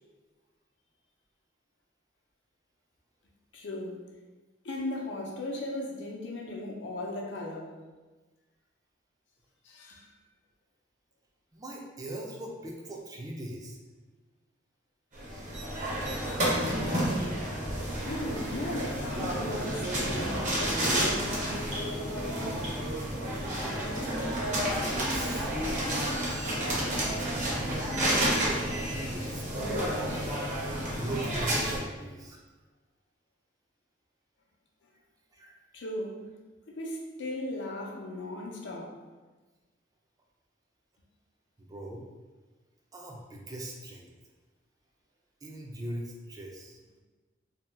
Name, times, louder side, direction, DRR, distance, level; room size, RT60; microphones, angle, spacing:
voice 1, 3.5-4.0 4.6-7.7 9.6-10.1 18.0-22.7 35.7-36.2 36.8-39.0, left 1 dB, 90° left, -1 dB, 0.5 m, -37 dB
voice 2, 11.5-13.8 24.6-25.5 26.3-26.6 26.9-27.9 28.2-30.4 30.6-32.4 35.3-35.6 41.6-42.0 42.9-44.1 45.4-46.8, right 1 dB, 20° right, -1 dB, 0.4 m, -41 dB
sound 1, 15.1-31.8, right 1 dB, 45° right, 0.8 m, -30 dB
sound 2, 17.9-28.6, right 1 dB, 75° right, 0.6 m, -47 dB
2.8 x 2.1 x 3.2 m, 1.3 s
head